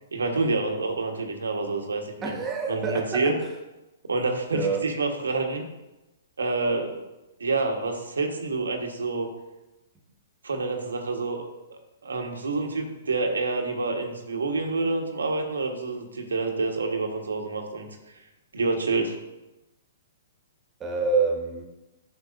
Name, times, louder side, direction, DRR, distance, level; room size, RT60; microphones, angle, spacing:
voice 1, 0.1-2.4 2.7-3.3 4.1-5.6 6.4-7.0 7.4-9.3 10.4-11.4 11.7-17.9 18.5-19.2, right 3 dB, 80° right, 3 dB, 1.3 m, -28 dB
voice 2, 2.2-3.3 4.5-4.8 20.8-21.6, right 4 dB, 20° right, 0 dB, 1.7 m, -27 dB
11.0 x 6.5 x 2.6 m, 1.0 s
hypercardioid pair, 120°, 0 cm